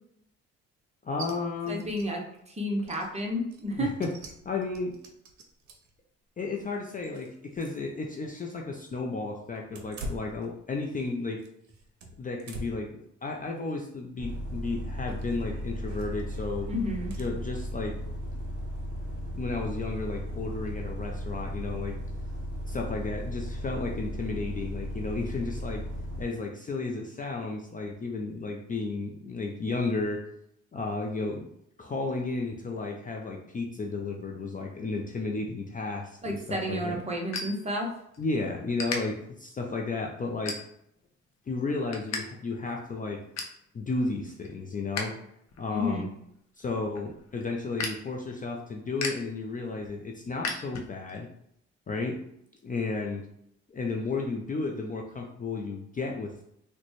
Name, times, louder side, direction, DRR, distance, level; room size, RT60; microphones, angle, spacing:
voice 1, 1.0-1.8 3.7-4.1 4.4-5.0 6.4-11.4 12.2-16.7 17.2-18.0 19.4-22.0 22.7-25.8 26.2-30.2 30.7-31.5 31.8-37.0 38.2-40.6 41.5-43.2 43.7-45.1 45.6-46.1 46.6-51.3 51.9-52.2 52.6-53.3 53.7-56.4, left 3 dB, 30° left, 1 dB, 0.4 m, -33 dB
sound 1, 1.2-1.3 1.7-2.1 2.4-2.5 2.8-6.0 6.5-7.9 8.1-8.2 9.6-11.1 11.4-12.9 13.4-13.7 15.1-15.4 15.9-16.3 17.1-17.3, right 1 dB, 70° right, 0.7 m, -44 dB
voice 2, 1.7-2.2 2.5-3.9 16.7-17.1 36.2-37.9 45.7-46.1, left 1 dB, 20° right, 0 dB, 0.8 m, -31 dB
Bus, 14.2-26.2, equal, 45° right, 1.1 m, -36 dB
sound 2, 36.2-38.3 38.5-39.0 39.6-39.8 40.3-41.0 41.4-42.2 42.5-42.6 43.0-43.6 44.1-45.0 45.4-51.2, left 4 dB, 60° left, 0.7 m, -37 dB
3.9 x 2.1 x 3.1 m, 0.75 s
cardioid pair, 90°, 30 cm